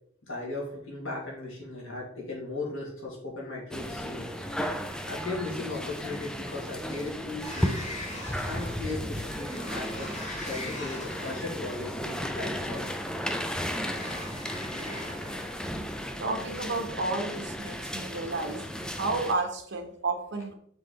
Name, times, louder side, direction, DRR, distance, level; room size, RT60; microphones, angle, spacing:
voice 1, 0.2-4.3 5.1-7.8 8.5-10.1 10.4-13.0, left 3 dB, 85° left, -4 dB, 2.5 m, -37 dB
sound 1, 3.7-19.3, equal, 5° left, 0.4 m, -34 dB
Sliding door, 7.4-15.6, left 1 dB, 35° left, 2.2 m, -42 dB
voice 2, 16.2-18.6 18.9-20.5, right 3 dB, 60° right, 3 dB, 1.3 m, -31 dB
6.8 x 3.9 x 3.9 m, 0.64 s
head